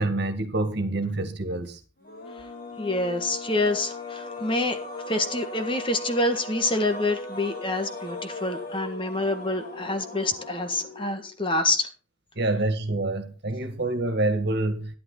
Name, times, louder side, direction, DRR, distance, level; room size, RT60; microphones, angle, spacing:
voice 1, 0.0-1.8 12.4-15.0, right 2 dB, 60° right, 1.9 m, -27 dB
sound 1, 2.0-11.4, left 2 dB, 50° left, 3.1 m, -38 dB
voice 2, 2.8-4.8 5.1-11.9, left 2 dB, 25° left, 1.6 m, -27 dB
12.5 x 11.0 x 4.0 m
head